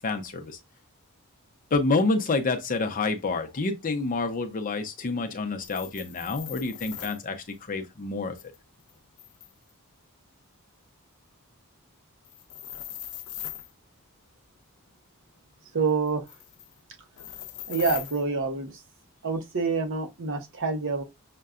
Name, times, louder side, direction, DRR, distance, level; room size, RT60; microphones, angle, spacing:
voice 1, 0.0-0.6 1.7-8.3, left 3 dB, 40° left, 0.6 m, -28 dB
sound 1, 5.6-7.2 8.4-9.7 12.3-13.7 16.1-16.7 17.2-18.2, left 11 dB, 85° left, 0.6 m, -40 dB
voice 2, 15.7-16.2 17.7-18.7 19.2-21.0, right 4 dB, 65° right, 0.8 m, -27 dB
6.5 x 2.2 x 2.4 m
head